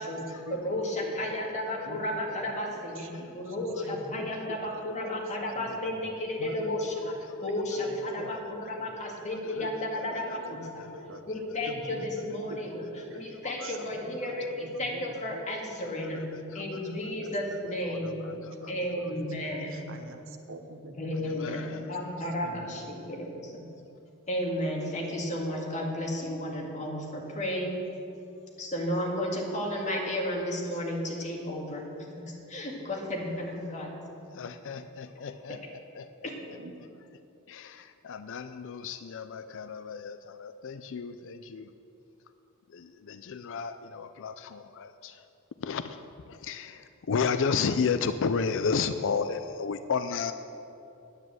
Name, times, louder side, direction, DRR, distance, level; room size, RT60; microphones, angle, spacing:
voice 1, 0.0-7.1 7.4-10.8 11.3-12.7 13.1-16.3 16.5-18.3 18.7-19.9 21.0-23.6 24.3-27.8 28.6-34.0, left 1 dB, 30° left, -1 dB, 2.1 m, -33 dB
voice 2, 1.8-4.6 4.9-5.1 5.6-6.0 6.4-6.7 7.0-7.2 7.5-8.4 8.8-9.2 9.5-9.8 10.1-10.3 10.7-15.4 17.1-17.6 17.9-21.3 21.8-21.9 22.2-23.0 36.6-36.7, right 2 dB, 60° right, 5 dB, 1.1 m, -47 dB
voice 3, 5.0-5.4 7.4-7.5 9.3-11.2 11.6-11.7 13.4-13.7 15.8-17.1 17.5-17.6 17.9-18.7 21.3-21.9 34.3-36.3 37.5-41.7 42.7-45.2 45.6-46.0 46.3-50.3, left 5 dB, 60° left, 11 dB, 0.4 m, -33 dB
9.8 x 9.6 x 7.7 m, 2.8 s
head